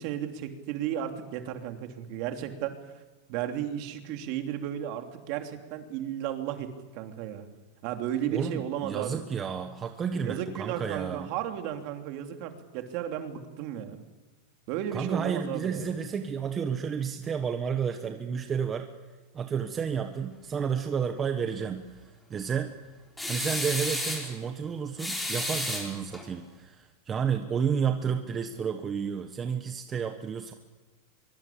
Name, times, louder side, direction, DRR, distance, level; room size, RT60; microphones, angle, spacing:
voice 1, 0.0-2.8 3.3-7.5 7.8-9.2 10.2-14.0 14.7-15.9, right 10 dB, 45° right, 6 dB, 2.9 m, -34 dB
voice 2, 8.3-11.3 14.9-18.9 19.3-22.7 23.3-30.5, right 7 dB, 20° right, 6 dB, 1.3 m, -31 dB
sound 1, 23.2-24.3 25.0-26.2, left 1 dB, 5° left, 5.3 m, -32 dB
23.5 x 23.5 x 8.6 m, 1.2 s
supercardioid pair, 160°, 0 cm